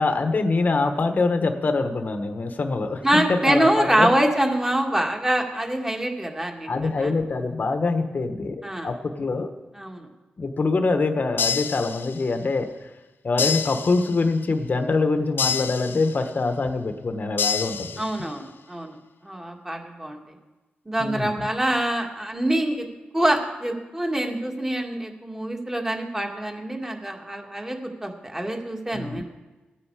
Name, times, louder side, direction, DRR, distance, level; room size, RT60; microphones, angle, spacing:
voice 1, 0.0-4.1 6.7-9.5 10.4-12.7 13.2-17.9 21.0-21.5 28.9-29.2, left 3 dB, 50° left, 6 dB, 1.2 m, -24 dB
voice 2, 3.0-7.1 8.6-8.9 9.8-10.1 18.0-19.0 19.2-20.2 20.9-22.9 23.1-29.2, right 1 dB, 15° right, 2 dB, 2.1 m, -25 dB
sound 1, 11.4-12.4 13.4-14.4 15.4-16.4 17.4-18.4, left 7 dB, 75° left, 0.5 m, -28 dB
16.0 x 9.1 x 4.9 m, 1.2 s
cardioid pair, 60°, 4 cm